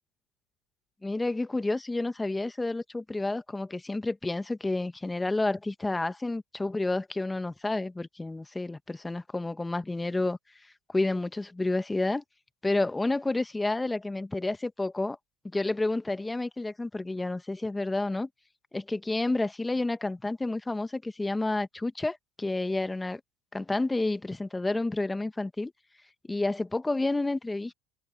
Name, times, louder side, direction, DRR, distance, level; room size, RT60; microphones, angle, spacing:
voice 1, 1.0-10.4 10.9-12.2 12.6-15.2 15.5-18.3 18.7-23.2 23.5-25.7 26.3-27.7, left 2 dB, 10° left, 1.3 m, -30 dB
supercardioid pair, 100°, 0 cm